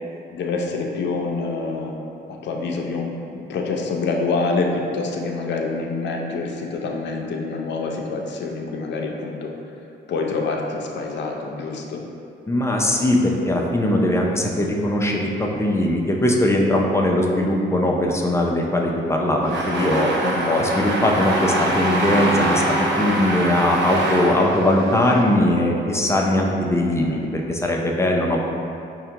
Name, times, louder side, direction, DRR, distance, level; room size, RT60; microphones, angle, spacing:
voice 1, 0.3-1.9 2.3-9.5 10.1-12.0 20.2-20.6 27.0-27.2, left 3 dB, 65° left, 1 dB, 0.5 m, -26 dB
voice 2, 12.5-20.1 20.4-28.5, left 1 dB, 15° left, -1 dB, 0.4 m, -20 dB
sound 1, 19.4-25.2, right 1 dB, 65° right, 0.7 m, -23 dB
5.4 x 2.1 x 2.8 m, 2.7 s
cardioid pair, 90°, 20 cm